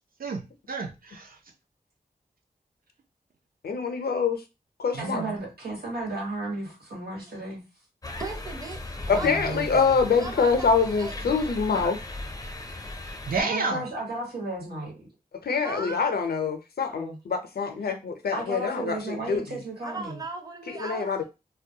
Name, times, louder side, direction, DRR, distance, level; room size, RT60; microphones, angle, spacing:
voice 1, 0.2-1.4 4.9-5.4 13.3-13.8, right 3 dB, 65° right, 0.5 m, -30 dB
voice 2, 3.6-4.4 4.8-5.2 9.1-12.0 15.4-19.6 20.8-21.2, left 5 dB, 80° left, 0.5 m, -25 dB
voice 3, 5.0-7.6 9.1-10.0 13.4-15.1 15.8-16.0 16.9-17.2 18.3-20.2, right 2 dB, 90° right, 1.2 m, -34 dB
sound 1, 8.0-13.4, left 2 dB, 25° left, 0.4 m, -37 dB
voice 4, 8.2-10.7 11.0-11.5 15.6-16.1 19.8-21.2, right 3 dB, 25° right, 0.6 m, -38 dB
2.2 x 2.1 x 2.7 m
wide cardioid pair, 75°, 16 cm